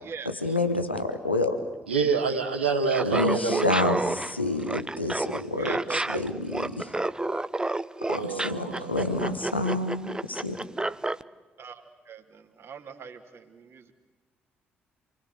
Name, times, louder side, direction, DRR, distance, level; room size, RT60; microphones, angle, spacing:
voice 1, 0.2-1.6 3.0-6.9 8.1-10.6, left 2 dB, 90° left, 7 dB, 1.3 m, -28 dB
voice 2, 1.9-4.2 8.1-9.3, right 5 dB, 85° right, 2 dB, 1.7 m, -28 dB
Laughter, 2.8-11.2, right 2 dB, 15° right, 0.9 m, -30 dB
voice 3, 5.6-6.2 11.6-13.9, right 6 dB, 45° right, 4 dB, 2.7 m, -41 dB
28.0 x 22.5 x 8.1 m, 1.3 s
figure-of-eight pair, 45°, 6 cm